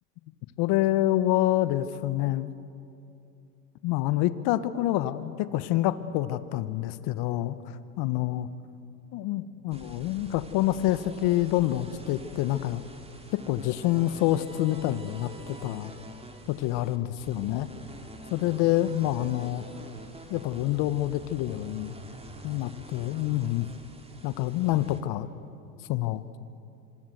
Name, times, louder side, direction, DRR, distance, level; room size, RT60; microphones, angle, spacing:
voice 1, 0.6-2.5 3.8-8.5 9.1-12.8 13.3-15.9 16.5-17.7 18.3-19.6 20.3-21.9 22.4-23.7 24.2-25.3 25.9-26.2, left 14 dB, 55° left, 13 dB, 1.3 m, -27 dB
sound 1, 9.7-25.0, right 1 dB, 10° right, 2.8 m, -46 dB
26.5 x 25.0 x 8.0 m, 2.6 s
hypercardioid pair, 90°, 48 cm